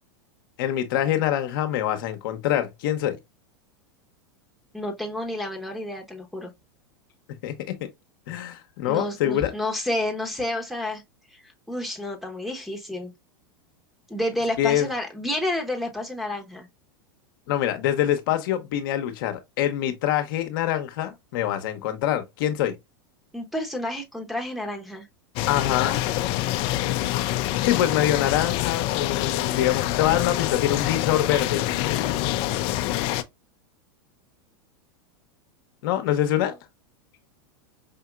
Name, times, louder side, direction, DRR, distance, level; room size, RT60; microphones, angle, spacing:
voice 1, 0.6-3.2 7.4-7.9 8.3-9.5 14.6-14.9 17.5-22.7 25.5-26.0 27.6-31.6 35.8-36.5, left 12 dB, 65° left, 0.8 m, -25 dB
voice 2, 4.7-6.5 8.8-11.0 11.3-13.1 14.1-16.7 23.3-25.1, left 1 dB, ahead, 0.9 m, -30 dB
sound 1, 25.4-33.2, left 14 dB, 50° left, 0.4 m, -26 dB
5.1 x 2.8 x 2.3 m
hypercardioid pair, 115°, 12 cm